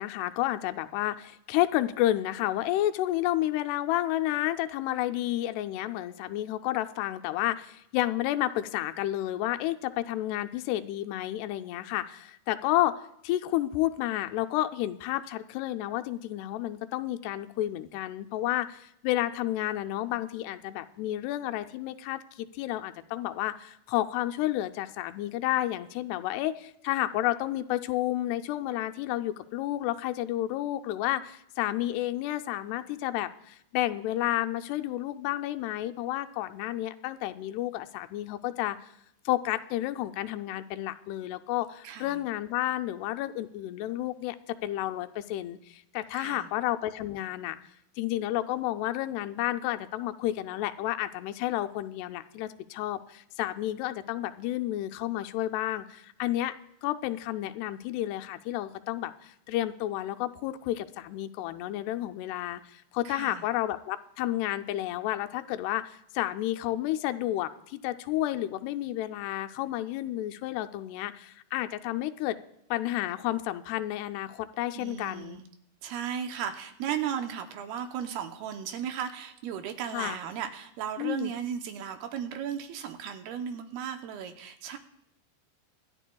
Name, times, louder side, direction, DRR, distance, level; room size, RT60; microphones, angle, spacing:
voice 1, 0.0-13.0 13.2-38.9 39.3-47.6 48.0-56.5 56.8-72.4 72.7-75.4 79.9-80.2 81.0-81.3, left 14 dB, 85° left, 9 dB, 2.6 m, -31 dB
voice 2, 41.8-42.2 46.1-46.5 63.0-63.4 74.8-75.4 75.8-84.8, right 8 dB, 80° right, 6 dB, 2.6 m, -35 dB
25.0 x 11.5 x 2.3 m, 0.78 s
omnidirectional pair, 4.7 m